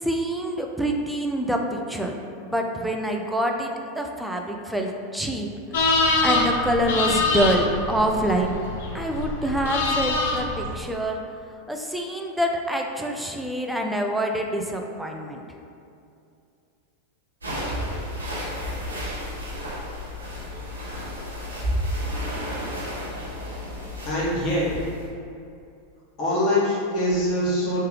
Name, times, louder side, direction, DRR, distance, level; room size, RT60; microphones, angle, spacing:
voice 1, 0.0-2.1 2.4-5.5 5.8-8.6 8.9-11.2 11.7-15.4, right 1 dB, 5° right, 2 dB, 0.3 m, -26 dB
sound 1, 5.7-10.7, left 2 dB, 65° left, 0.4 m, -25 dB
sound 2, 17.4-25.1, equal, 85° right, 0.6 m, -31 dB
voice 2, 24.0-24.7 26.2-27.9, left 1 dB, 40° left, -7 dB, 1.2 m, -23 dB
3.1 x 2.2 x 3.0 m, 2.5 s
hypercardioid pair, 90°, 0 cm